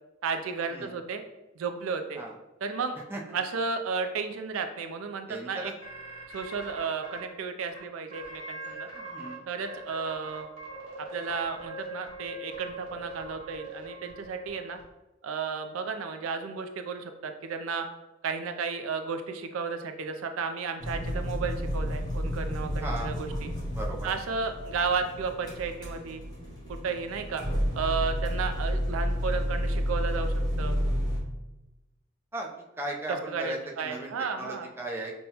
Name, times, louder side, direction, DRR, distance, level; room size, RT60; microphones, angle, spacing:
voice 1, 0.2-1.2 1.6-2.2 2.6-3.0 3.3-5.7 6.3-8.9 9.5-10.5 11.1-14.8 15.2-17.9 18.2-23.5 24.0-26.2 26.7-27.4 27.7-30.8 33.1-34.7, right 5 dB, 85° right, 7 dB, 0.4 m, -33 dB
voice 2, 5.3-5.7 8.9-9.4 22.8-23.1 23.7-24.1 32.3-32.5 32.8-35.1, right 1 dB, 10° right, -2 dB, 0.4 m, -37 dB
sound 1, 5.8-7.2 7.7-7.8 8.1-9.3 9.6-14.8, right 2 dB, 30° right, 1.1 m, -42 dB
sound 2, 20.8-31.2, equal, 20° left, 1.0 m, -31 dB
5.4 x 2.2 x 2.8 m, 1.0 s
head